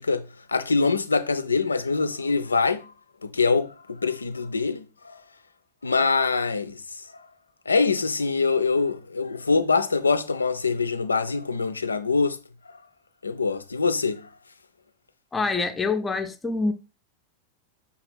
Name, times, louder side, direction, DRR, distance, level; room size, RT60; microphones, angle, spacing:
voice 1, 0.0-2.9 3.2-5.2 5.8-6.8 7.7-12.4 13.2-14.3, left 4 dB, 75° left, 0.3 m, -24 dB
voice 2, 15.3-16.7, left 3 dB, 10° left, 0.4 m, -25 dB
5.7 x 2.3 x 3.3 m
figure-of-eight pair, 90°, 0 cm